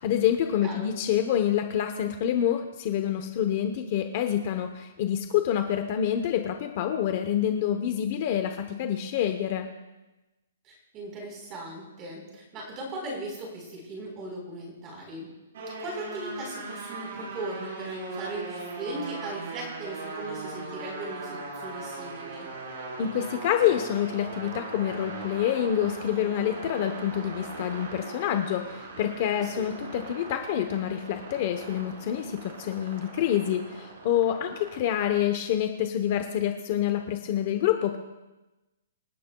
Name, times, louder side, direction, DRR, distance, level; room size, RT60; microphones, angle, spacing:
voice 1, 0.0-9.7 23.0-38.0, left 10 dB, 30° left, 6 dB, 0.8 m, -27 dB
voice 2, 10.6-15.3 15.8-22.5 29.4-29.6, right 1 dB, 15° right, -1 dB, 4.1 m, -38 dB
sound 1, 15.5-34.8, right 3 dB, 45° right, 4.0 m, -40 dB
26.5 x 12.0 x 2.3 m, 1.1 s
hypercardioid pair, 175°, 0 cm